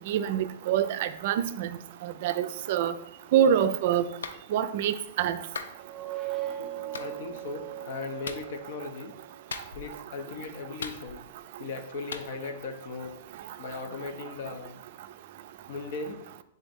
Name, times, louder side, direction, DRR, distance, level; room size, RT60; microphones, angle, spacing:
voice 1, 0.1-1.7 2.0-2.9 3.3-4.1 4.5-5.4, right 9 dB, 55° right, 11 dB, 0.3 m, -25 dB
Clapping, 4.2-4.4 5.6-5.8 6.9-7.1 8.2-8.5 9.5-10.0 10.8-11.4 12.1-12.3, left 5 dB, 90° left, 0.4 m, -38 dB
sound 1, 5.7-9.3, right 12 dB, 20° right, 0.6 m, -38 dB
voice 2, 6.9-9.2 9.7-11.2 11.6-13.2 13.6-14.8 15.7-16.2, left 4 dB, 65° left, 6 dB, 0.7 m, -38 dB
3.8 x 3.4 x 4.1 m, 0.76 s
hypercardioid pair, 135°, 0 cm